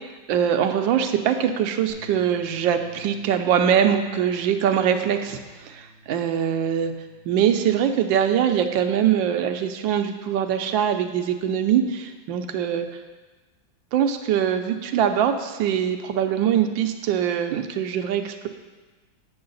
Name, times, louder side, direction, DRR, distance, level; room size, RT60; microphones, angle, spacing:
voice 1, 0.3-6.9 7.2-12.9 13.9-18.5, right 9 dB, 80° right, 7 dB, 1.3 m, -23 dB
Bass guitar, 1.9-8.1, equal, 45° left, 2.2 m, -48 dB
8.7 x 6.3 x 3.9 m, 1.3 s
omnidirectional pair, 2.1 m